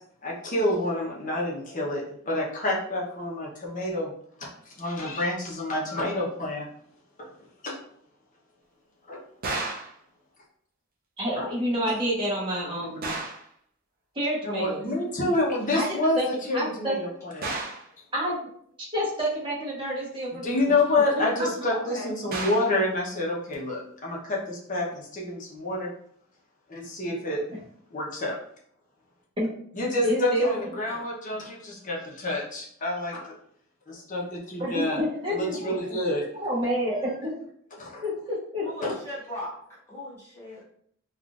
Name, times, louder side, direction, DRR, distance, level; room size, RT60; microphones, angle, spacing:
voice 1, 0.2-4.1 4.4-6.7 7.2-7.3 7.6-7.8 9.1-9.2 9.7-9.8 11.4-11.5 14.4-17.5 20.4-25.9 26.7-27.4 27.9-28.4 29.7-33.3 33.9-35.0 35.3-36.3 37.8-38.1 38.8-39.0, left 1 dB, 40° left, -3 dB, 0.8 m, -28 dB
sound 1, 9.4-10.0 13.0-13.5 17.4-17.9 22.3-22.8, right 3 dB, 45° right, 0.5 m, -32 dB
voice 2, 11.2-13.1 14.1-14.8 15.7-16.3 16.5-16.9 18.1-18.4 18.9-20.7 21.4-21.5 29.4-29.5 30.0-30.4 34.6-35.7 36.4-37.3 38.0-38.9, equal, 25° right, -6 dB, 1.0 m, -28 dB
voice 3, 21.7-22.1 26.8-26.9 30.4-30.5 30.8-31.0 31.3-31.4 38.6-40.6, left 1 dB, 15° left, -8 dB, 1.3 m, -39 dB
3.6 x 2.4 x 2.4 m, 0.64 s
head